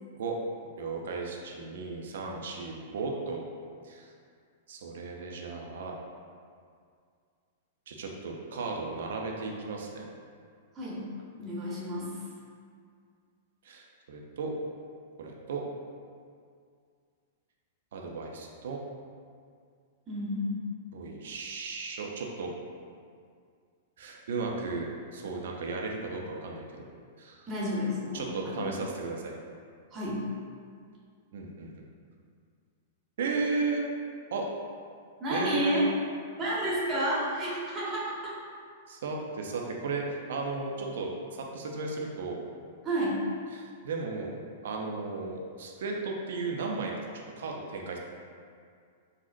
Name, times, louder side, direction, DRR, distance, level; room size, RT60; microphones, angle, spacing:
voice 1, 0.8-3.4 3.8-4.1 4.7-5.9 7.9-10.0 13.6-14.5 15.2-15.6 17.9-18.8 20.9-22.5 24.0-26.9 27.2-27.5 28.1-29.4 31.3-31.7 33.2-33.8 34.3-34.5 35.3-35.9 38.9-42.4 43.5-44.4 44.6-48.0, right 3 dB, 65° right, 0 dB, 0.4 m, -35 dB
voice 2, 11.4-12.1 20.1-20.5 27.5-28.7 29.9-30.2 35.2-35.8 36.4-38.3 42.8-43.2, equal, 25° right, -6 dB, 0.8 m, -31 dB
3.8 x 2.0 x 2.5 m, 2.2 s
figure-of-eight pair, 105°, 0 cm